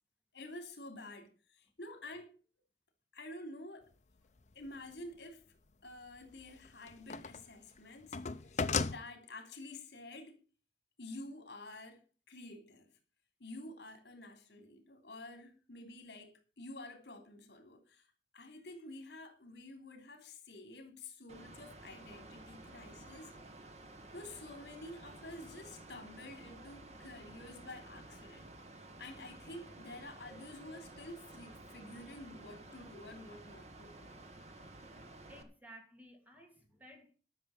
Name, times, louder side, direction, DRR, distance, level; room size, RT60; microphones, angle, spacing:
voice 1, 0.3-2.4 3.1-3.9 4.5-5.4 5.8-10.4 11.0-12.9 13.4-23.4 24.1-28.5 29.0-34.1, left 2 dB, 70° left, 3.3 m, -50 dB
sound 1, 4.4-4.5 6.2-7.5 7.8-9.0, left 5 dB, 40° left, 0.6 m, -35 dB
Mechanical fan, 21.3-35.4, right 2 dB, 40° right, 1.6 m, -53 dB
voice 2, 35.3-37.2, right 1 dB, 10° right, 2.7 m, -56 dB
12.0 x 6.6 x 7.1 m
head